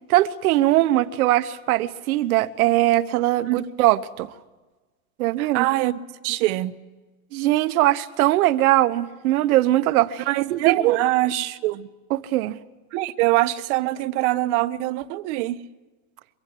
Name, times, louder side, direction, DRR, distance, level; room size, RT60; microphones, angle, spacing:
voice 1, 0.1-4.3 5.2-5.6 7.3-10.2 10.5-11.0 12.1-12.6, right 15 dB, 85° right, 1.2 m, -20 dB
voice 2, 5.4-6.0 6.2-6.7 10.3-11.9 12.9-15.6, right 17 dB, 55° right, 1.1 m, -23 dB
23.5 x 23.5 x 8.6 m
supercardioid pair, 160°, 42 cm